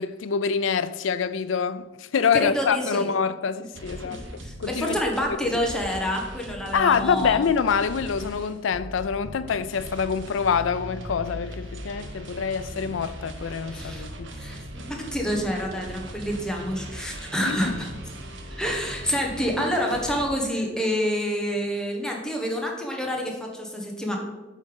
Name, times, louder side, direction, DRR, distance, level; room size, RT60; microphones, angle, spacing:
voice 1, 0.0-5.0 6.7-14.3 17.4-17.8, left 6 dB, 85° left, 0.4 m, -26 dB
voice 2, 2.3-3.1 4.0-4.1 4.4-7.4 13.7-14.1 14.4-17.9 18.5-24.2, equal, 5° left, 1.3 m, -28 dB
sound 1, 3.7-20.3, right 1 dB, 75° right, 1.1 m, -39 dB
8.4 x 5.5 x 5.2 m
head